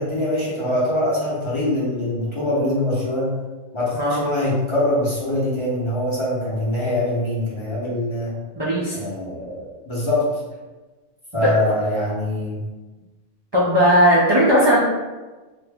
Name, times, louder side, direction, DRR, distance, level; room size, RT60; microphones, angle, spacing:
voice 1, 0.0-3.3 3.7-8.4 8.9-10.2 11.3-12.6, left 1 dB, 30° left, -7 dB, 0.7 m, -23 dB
voice 2, 8.5-9.0 11.4-11.5 13.5-14.8, equal, 35° right, -7 dB, 0.4 m, -17 dB
2.8 x 2.5 x 3.4 m, 1.2 s
omnidirectional pair, 1.2 m